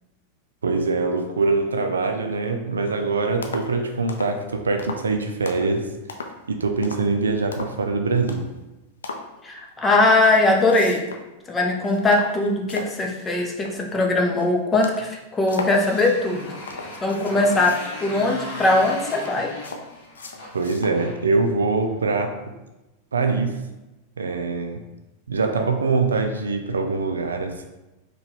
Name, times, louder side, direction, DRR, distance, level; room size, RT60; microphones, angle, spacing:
voice 1, 0.6-5.9 6.5-8.5 20.5-22.3 23.1-23.6 24.2-24.8 25.3-27.6, right 3 dB, 70° right, 5 dB, 0.4 m, -23 dB
sound 1, 2.9-3.1 3.4-3.7 4.1-4.4 4.8-5.1 5.5-5.8 6.1-6.5 6.8-7.1 7.5-7.8 8.3-8.6 9.0-9.3 10.0-11.3 11.7-13.9 14.4-14.5 14.7-15.8 16.3-18.1 18.7-21.0 21.4-21.5, left 4 dB, 70° left, 0.4 m, -37 dB
voice 2, 9.4-11.0 11.5-16.6 17.0-19.5, left 2 dB, 15° left, 1 dB, 0.6 m, -20 dB
Motorcycle, 15.4-21.9, left 1 dB, 30° left, 1.4 m, -38 dB
4.5 x 2.2 x 3.2 m, 1.0 s
figure-of-eight pair, 90°, 0 cm